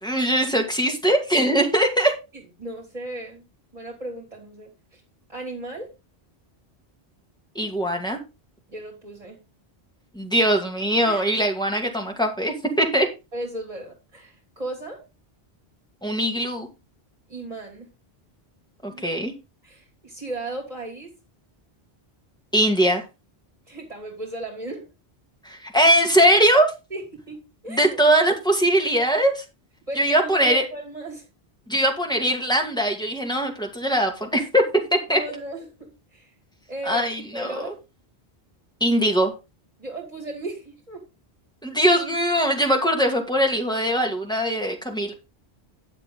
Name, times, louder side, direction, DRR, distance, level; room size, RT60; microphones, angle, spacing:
voice 1, 0.0-2.1 7.5-8.2 10.1-13.1 16.0-16.7 18.8-19.3 22.5-23.0 25.4-26.7 27.7-29.4 30.0-30.6 31.7-34.6 34.9-35.2 36.8-37.7 38.8-39.3 41.6-45.1, equal, 5° left, 1 dB, 2.5 m, -21 dB
voice 2, 2.6-3.5 3.7-5.0 5.3-5.9 8.7-9.4 11.0-11.2 13.3-15.0 17.3-17.9 18.9-19.1 19.6-21.1 23.7-24.9 26.9-28.0 29.9-31.3 35.1-36.3 36.7-37.0 37.3-37.8 39.8-41.0, right 2 dB, 35° right, 0 dB, 3.1 m, -35 dB
10.5 x 7.6 x 3.9 m, 0.26 s
omnidirectional pair, 1.1 m